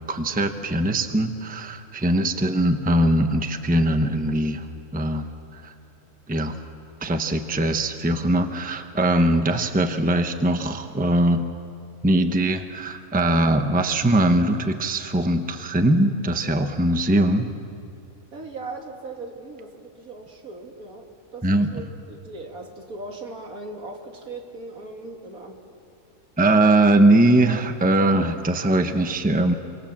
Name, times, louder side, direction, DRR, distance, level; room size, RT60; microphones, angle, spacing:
voice 1, 0.1-4.7 4.9-5.3 5.5-5.7 6.3-6.6 7.0-11.5 12.0-17.5 21.4-21.7 26.4-29.5, right 1 dB, 5° right, 7 dB, 0.9 m, -21 dB
voice 2, 18.3-25.6, right 2 dB, 75° right, 2 dB, 2.8 m, -38 dB
27.0 x 24.0 x 7.4 m, 2.5 s
omnidirectional pair, 1.5 m